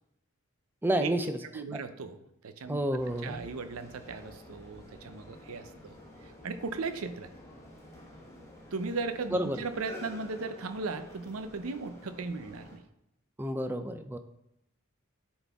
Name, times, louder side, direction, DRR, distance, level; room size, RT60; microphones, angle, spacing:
voice 1, 0.8-1.3 1.7-1.8 2.7-3.4 9.3-9.6 13.4-14.2, right 1 dB, 10° right, 8 dB, 0.4 m, -30 dB
voice 2, 1.4-2.8 3.2-5.9 6.2-7.3 8.7-12.8, right 4 dB, 85° right, 10 dB, 0.6 m, -37 dB
sound 1, 3.0-12.8, left 1 dB, 15° left, 1.2 m, -50 dB
9.5 x 4.0 x 3.5 m, 0.80 s
head